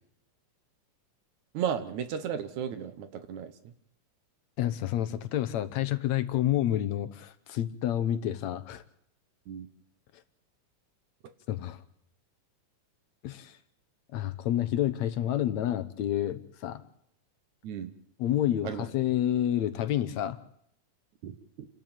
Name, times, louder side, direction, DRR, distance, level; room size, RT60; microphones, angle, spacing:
voice 1, 1.5-3.7 9.5-9.7 17.6-17.9 18.6-18.8 21.2-21.7, right 8 dB, 75° right, 11 dB, 2.5 m, -34 dB
voice 2, 4.6-8.8 11.5-11.8 13.2-13.6 14.1-16.8 18.2-20.4, left 12 dB, 70° left, 12 dB, 2.1 m, -29 dB
28.5 x 12.5 x 9.0 m, 0.75 s
omnidirectional pair, 3.5 m